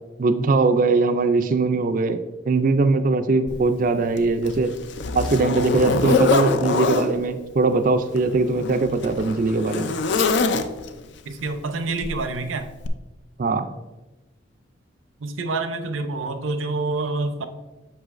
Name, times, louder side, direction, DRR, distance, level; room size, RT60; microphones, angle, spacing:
voice 1, 0.2-2.2 2.5-4.7 5.1-10.0 13.4-13.7, right 3 dB, 45° right, 9 dB, 0.3 m, -21 dB
Zipper (clothing), 3.5-3.6 4.2-7.1 8.1-11.0 12.0-12.2 12.8-12.9, left 4 dB, 65° left, 0.4 m, -24 dB
voice 2, 11.3-12.7 15.2-17.5, right 3 dB, 85° right, 8 dB, 0.6 m, -27 dB
7.9 x 6.1 x 2.5 m, 1.1 s
head